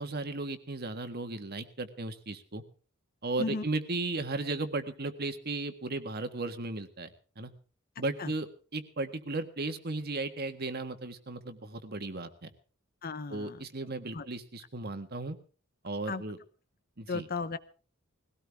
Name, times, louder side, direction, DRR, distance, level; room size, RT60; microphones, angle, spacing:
voice 1, 0.0-2.6 3.2-7.1 7.4-7.5 8.0-12.5 13.3-15.4 15.8-16.4 17.0-17.3, right 2 dB, 50° right, 9 dB, 1.7 m, -35 dB
voice 2, 13.0-13.6 14.1-14.3 16.1-16.2 17.1-17.6, left 3 dB, 45° left, 14 dB, 0.9 m, -35 dB
20.5 x 17.0 x 3.5 m, 0.38 s
head